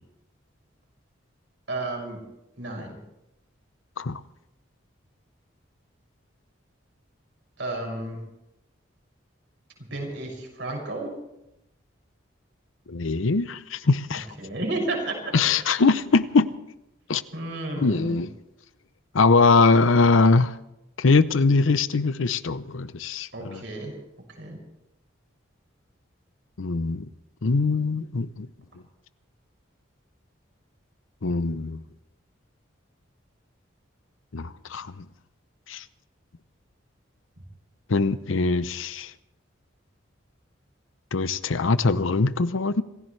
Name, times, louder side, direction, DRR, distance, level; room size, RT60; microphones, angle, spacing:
voice 1, 1.7-2.2 2.6-3.0 7.6-8.2 9.8-11.1 14.4-15.1 17.3-18.2 23.3-23.9 24.4-24.6, right 2 dB, 65° right, 6.4 m, -32 dB
voice 2, 12.9-14.3 15.3-16.5 17.1-17.2 17.8-18.3 19.1-20.6 21.0-23.6 26.6-27.1 27.4-28.5 31.2-31.8 34.3-35.0 35.7-35.8 37.9-39.1 41.1-42.8, left 3 dB, 80° left, 0.7 m, -22 dB
27.5 x 15.5 x 3.3 m
head